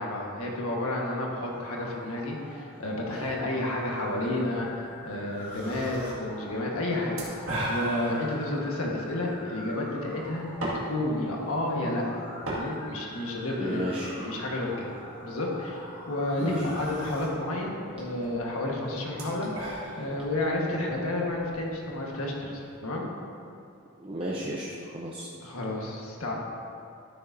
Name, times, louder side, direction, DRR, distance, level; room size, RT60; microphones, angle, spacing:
voice 1, 0.0-12.2 12.5-14.8 15.2-23.1 25.4-26.3, left 1 dB, 70° left, -2 dB, 1.5 m, -31 dB
sound 1, 1.5-17.0, left 1 dB, 20° left, 1.8 m, -45 dB
sound 2, 3.1-22.8, right 1 dB, 70° right, 2.1 m, -41 dB
voice 2, 13.5-14.1 16.4-16.6 24.0-25.3, right 1 dB, 25° right, -4 dB, 0.6 m, -33 dB
12.5 x 6.9 x 2.7 m, 2.5 s
head